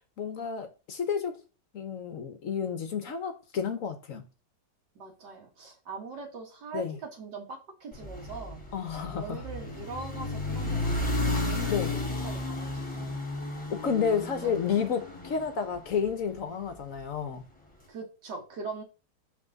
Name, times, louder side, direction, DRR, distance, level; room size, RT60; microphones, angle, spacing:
voice 1, 0.2-1.4 1.7-4.2 6.7-6.9 8.7-9.4 11.7-11.9 13.7-17.4, left 6 dB, 55° left, 1.1 m, -31 dB
voice 2, 5.0-8.6 9.1-13.2 14.4-14.5 17.9-18.8, right 4 dB, 75° right, 2.4 m, -41 dB
sound 1, 7.9-16.3, left 2 dB, 15° left, 1.6 m, -33 dB
6.0 x 5.5 x 3.9 m
omnidirectional pair, 1.9 m